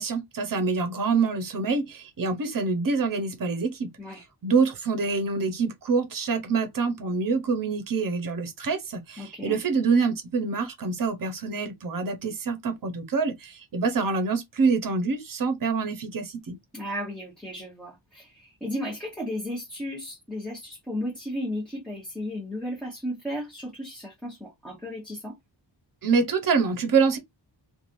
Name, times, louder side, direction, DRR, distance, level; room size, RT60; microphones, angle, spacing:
voice 1, 0.0-3.9 4.4-16.6 26.0-27.2, right 4 dB, 45° right, 0.9 m, -26 dB
voice 2, 9.2-9.6 16.7-25.4, equal, ahead, 1.0 m, -34 dB
3.2 x 2.5 x 2.5 m
wide cardioid pair, 160°, 45 cm